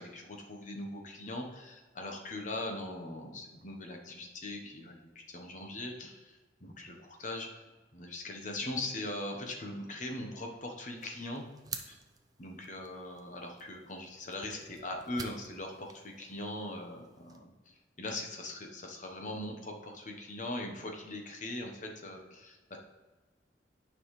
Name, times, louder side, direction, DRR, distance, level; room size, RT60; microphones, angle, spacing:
voice 1, 0.0-6.3 6.6-7.6 7.9-11.5 11.8-12.0 12.4-17.5 18.0-22.8, left 1 dB, 40° left, 2 dB, 1.0 m, -40 dB
sound 1, 11.0-17.4, right 5 dB, 20° right, 0.5 m, -50 dB
9.1 x 5.5 x 3.2 m, 1.3 s
head